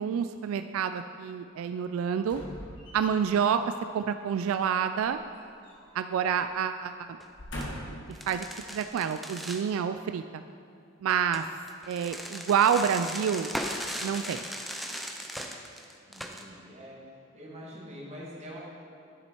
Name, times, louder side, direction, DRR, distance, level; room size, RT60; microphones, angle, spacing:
voice 1, 0.0-2.4 2.9-3.6 3.9-5.2 5.9-7.1 8.3-10.4 11.0-11.4 11.9-13.5 14.0-14.4, right 7 dB, 90° right, 10 dB, 0.3 m, -28 dB
sound 1, 2.2-3.4 4.9-6.1 6.4-6.6 7.2-8.1 8.8-8.9, equal, 60° left, 1.7 m, -41 dB
sound 2, 7.1-7.3 7.6-7.7 8.1-9.7 11.1-16.4, equal, ahead, 0.4 m, -38 dB
voice 2, 16.1-17.0 17.3-18.6, equal, 35° right, -5 dB, 1.9 m, -44 dB
10.5 x 6.1 x 4.4 m, 2.7 s
head